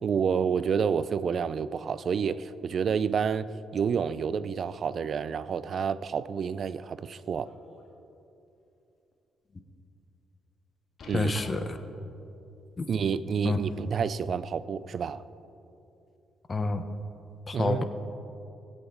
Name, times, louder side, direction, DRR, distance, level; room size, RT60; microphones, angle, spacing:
voice 1, 0.0-3.5 3.7-7.5 11.1-11.3 12.9-15.2 17.5-17.8, right 6 dB, 55° right, 16 dB, 0.4 m, -29 dB
sound 1, 7.1-7.9 8.4-8.5 9.1-9.2 11.0-11.9 13.2-14.0 14.9-15.0, left 3 dB, 55° left, 1.8 m, -48 dB
voice 2, 11.1-11.8 12.8-12.9 13.4-13.6 16.5-16.8 17.5-17.8, left 3 dB, 30° left, 8 dB, 0.9 m, -28 dB
18.0 x 8.1 x 3.8 m, 2.7 s
cardioid pair, 90°, 0 cm